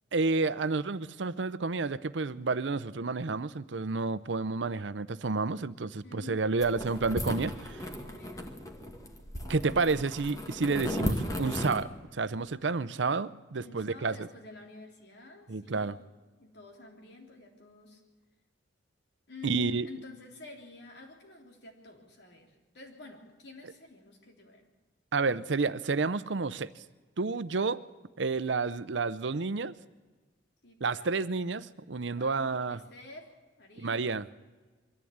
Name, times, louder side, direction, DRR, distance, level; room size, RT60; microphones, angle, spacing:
voice 1, 0.1-7.8 9.5-14.1 15.5-16.0 19.4-19.9 25.1-26.7 27.2-27.8 28.2-29.7 30.8-32.8 33.8-34.3, right 4 dB, 80° right, 15 dB, 0.7 m, -30 dB
voice 2, 6.0-6.8 7.8-8.5 13.6-16.0 16.4-18.0 19.3-24.7 25.3-25.7 30.6-31.1 32.2-33.3 33.6-34.1, left 3 dB, 65° left, 2 dB, 3.6 m, -49 dB
sound 1, 6.6-11.8, equal, 20° left, 1.9 m, -36 dB
23.0 x 14.5 x 8.7 m, 1.3 s
head